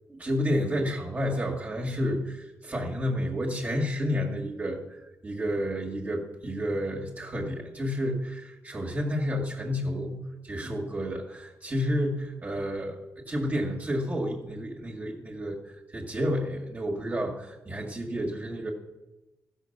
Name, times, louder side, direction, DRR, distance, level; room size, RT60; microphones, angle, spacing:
voice 1, 0.1-13.0 13.3-15.6 15.9-18.7, equal, 30° right, -1 dB, 2.0 m, -30 dB
14.5 x 6.5 x 6.7 m, 1.0 s
wide cardioid pair, 130°, 6 cm